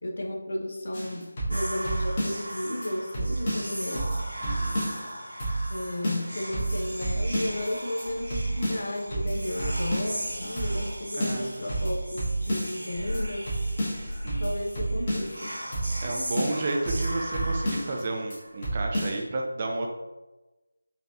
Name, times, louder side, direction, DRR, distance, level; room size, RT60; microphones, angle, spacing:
voice 1, 0.0-4.1 5.7-13.5 14.4-15.5, left 1 dB, 55° left, 1 dB, 0.7 m, -33 dB
sound 1, 0.9-2.5 2.8-2.9 3.1-5.1 5.4-5.8 6.0-7.7 8.0-8.1 8.3-10.3 10.6-10.9 11.2-12.9 13.1-13.2 13.5-15.4 15.7-16.1 16.4-18.0 18.3-18.4 18.6-19.2, right 1 dB, 35° left, 1.3 m, -30 dB
Whispering, 1.5-18.6, equal, 80° right, 1.1 m, -38 dB
voice 2, 4.4-4.9 11.1-11.5 14.0-14.5 16.0-19.9, right 2 dB, 30° right, 1 dB, 0.4 m, -32 dB
4.0 x 3.2 x 2.6 m, 1.1 s
figure-of-eight pair, 160°, 0 cm